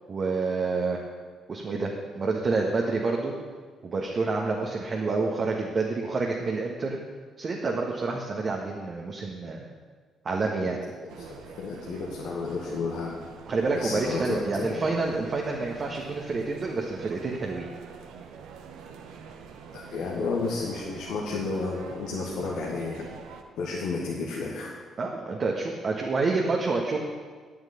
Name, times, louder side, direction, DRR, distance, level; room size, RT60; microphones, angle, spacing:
voice 1, 0.1-1.0 1.5-3.3 3.8-7.0 7.4-9.6 10.2-10.8 13.5-17.7 25.0-27.0, right 3 dB, 45° right, -1 dB, 1.5 m, -28 dB
sound 1, 11.1-23.4, right 6 dB, 65° right, 1.0 m, -45 dB
voice 2, 11.6-13.1 13.7-15.0 19.7-23.1 23.5-24.7, left 4 dB, 60° left, -4 dB, 1.8 m, -32 dB
9.7 x 9.0 x 7.1 m, 1.5 s
figure-of-eight pair, 45°, 0 cm